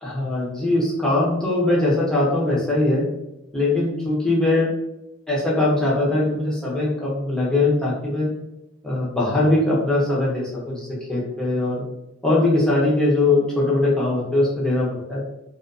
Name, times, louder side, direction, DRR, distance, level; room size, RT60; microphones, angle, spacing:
voice 1, 0.0-3.1 3.5-4.7 5.3-8.3 8.8-11.8 12.2-15.2, left 2 dB, 5° left, -6 dB, 0.6 m, -21 dB
2.4 x 2.3 x 2.5 m, 0.92 s
head